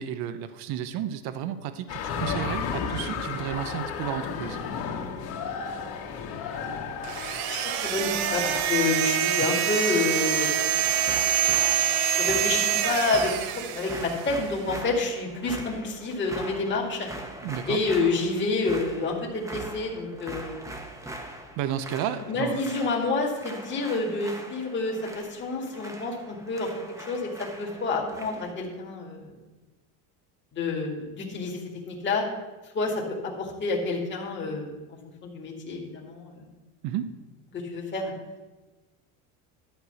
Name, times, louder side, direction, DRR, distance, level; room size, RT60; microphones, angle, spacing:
voice 1, 0.0-4.6 10.4-10.6 17.4-17.8 21.6-22.7 36.8-37.1, right 10 dB, 60° right, 11 dB, 0.8 m, -32 dB
sound 1, 1.9-8.7, left 6 dB, 55° left, 2.2 m, -33 dB
sound 2, 7.0-14.4, right 10 dB, 90° right, 0.9 m, -26 dB
voice 2, 7.5-10.8 11.8-13.3 13.6-17.1 17.7-20.6 22.2-26.7 27.1-29.3 30.5-32.3 32.7-33.0 33.4-34.8 35.2-36.4 37.6-38.1, left 3 dB, 25° left, -2 dB, 2.0 m, -29 dB
sound 3, 10.8-28.5, right 1 dB, 5° right, 1.0 m, -41 dB
12.0 x 4.7 x 8.0 m, 1.2 s
cardioid pair, 130°, 42 cm